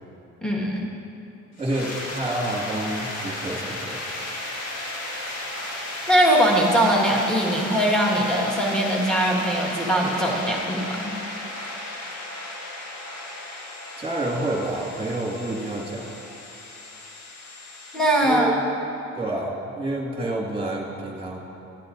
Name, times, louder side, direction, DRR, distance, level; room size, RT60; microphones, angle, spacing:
voice 1, 0.4-0.9 6.1-11.1 17.9-18.5, right 1 dB, ahead, -3 dB, 1.6 m, -21 dB
sound 1, 1.6-18.2, left 1 dB, 60° left, 1.6 m, -35 dB
voice 2, 1.6-4.0 14.0-16.0 18.2-18.6 19.1-21.4, right 1 dB, 20° right, -3 dB, 2.0 m, -28 dB
12.5 x 10.0 x 2.6 m, 3.0 s
cardioid pair, 90°, 30 cm